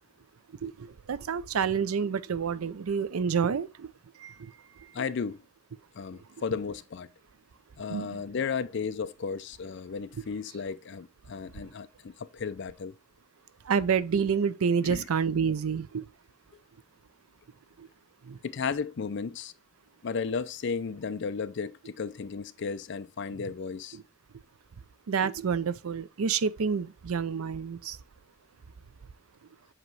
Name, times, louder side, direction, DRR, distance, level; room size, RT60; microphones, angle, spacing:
voice 1, 0.6-3.9 4.2-4.5 7.9-8.2 13.7-16.0 17.8-17.9 18.2-18.4 23.9-24.0 25.1-28.0, right 6 dB, 85° right, 0.5 m, -28 dB
voice 2, 4.9-5.4 5.9-7.1 7.8-12.9 14.8-15.1 18.4-19.5 20.0-24.0, left 5 dB, 55° left, 0.4 m, -34 dB
7.8 x 3.0 x 4.6 m
head